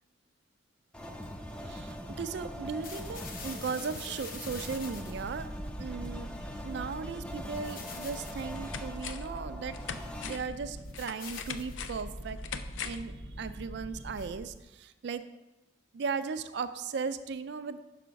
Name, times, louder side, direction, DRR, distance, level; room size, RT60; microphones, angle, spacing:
sound 1, 0.9-10.4, equal, 5° left, 0.4 m, -42 dB
voice 1, 1.6-5.5 5.8-6.3 6.6-9.8 10.2-12.4 12.8-15.2 15.9-17.8, right 5 dB, 60° right, 11 dB, 0.4 m, -37 dB
sound 2, 2.8-14.6, left 1 dB, 50° left, 0.8 m, -43 dB
sound 3, 8.3-9.4 9.7-13.1 13.5-13.6, left 7 dB, 80° left, 0.4 m, -42 dB
5.8 x 5.4 x 5.1 m, 1.0 s
head